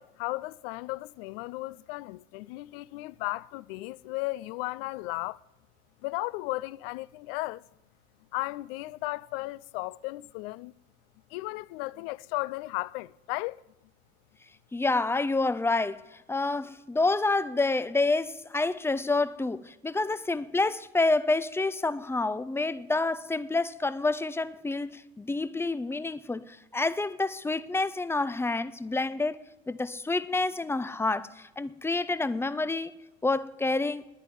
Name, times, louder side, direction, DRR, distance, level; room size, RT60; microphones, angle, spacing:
voice 1, 0.0-5.4 6.0-7.6 8.3-10.7 11.3-13.6, left 21 dB, 60° left, 0.6 m, -35 dB
voice 2, 14.7-16.0 16.3-29.4 29.7-32.9 33.2-34.0, left 3 dB, 5° left, 0.6 m, -28 dB
10.5 x 9.5 x 9.4 m
hypercardioid pair, 75°, 34 cm